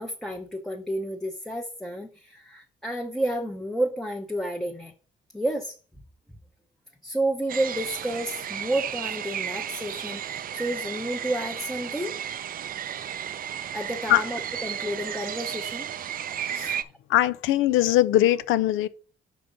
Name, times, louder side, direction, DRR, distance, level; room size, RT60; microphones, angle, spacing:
voice 1, 0.0-4.9 5.3-5.7 7.0-12.1 13.7-15.9 16.5-16.8, right 1 dB, ahead, 0.7 m, -31 dB
sound 1, 7.5-16.8, right 9 dB, 45° right, 0.4 m, -33 dB
voice 2, 16.5-16.8 17.1-18.9, left 14 dB, 90° left, 0.4 m, -21 dB
5.0 x 4.5 x 5.1 m
cardioid pair, 90°, 20 cm